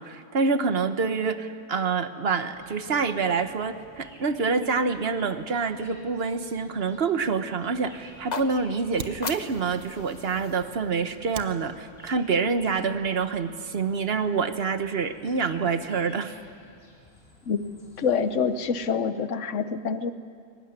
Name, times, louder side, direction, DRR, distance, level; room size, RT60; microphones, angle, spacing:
voice 1, 0.0-16.3, right 5 dB, 55° right, 10 dB, 1.3 m, -27 dB
sound 1, 2.5-18.9, left 1 dB, 55° left, 3.9 m, -54 dB
sound 2, 8.1-12.2, left 4 dB, 40° left, 1.1 m, -40 dB
Fire, 8.1-13.4, right 6 dB, 85° right, 1.4 m, -46 dB
voice 2, 18.0-20.1, left 6 dB, 90° left, 12 dB, 1.2 m, -26 dB
23.0 x 18.5 x 9.6 m, 2.3 s
omnidirectional pair, 1.2 m